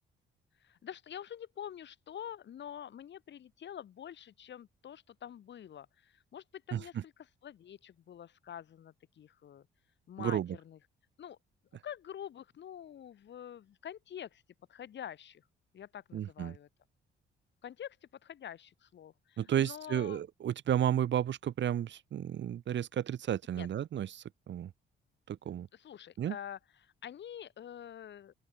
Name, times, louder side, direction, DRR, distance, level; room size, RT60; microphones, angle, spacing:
voice 1, 0.6-7.1 7.4-9.7 10.1-10.8 11.2-11.4 11.8-14.4 14.7-15.4 15.7-16.7 17.6-18.0 18.2-20.2 23.6-23.7 25.4-28.3, left 9 dB, 65° left, 5.8 m, -46 dB
voice 2, 6.7-7.0 10.2-10.6 16.1-16.6 19.4-24.7 25.3-25.7 26.2-26.3, right 10 dB, 65° right, 4.7 m, -32 dB
open air
cardioid pair, 90°, 20 cm